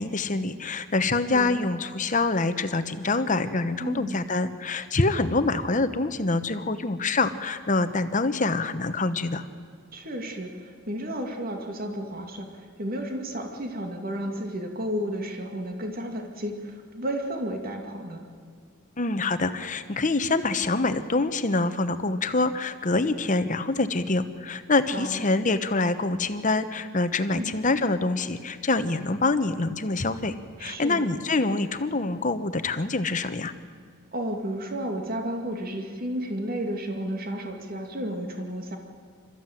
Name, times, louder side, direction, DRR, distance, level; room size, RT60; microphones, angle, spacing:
voice 1, 0.0-9.4 19.0-30.3 30.6-33.5, left 3 dB, 35° left, 10 dB, 1.0 m, -25 dB
voice 2, 3.8-4.2 9.9-18.2 24.9-25.2 27.3-27.5 30.6-31.0 34.1-38.8, equal, 45° right, 4 dB, 2.3 m, -32 dB
26.5 x 14.0 x 9.2 m, 2.1 s
head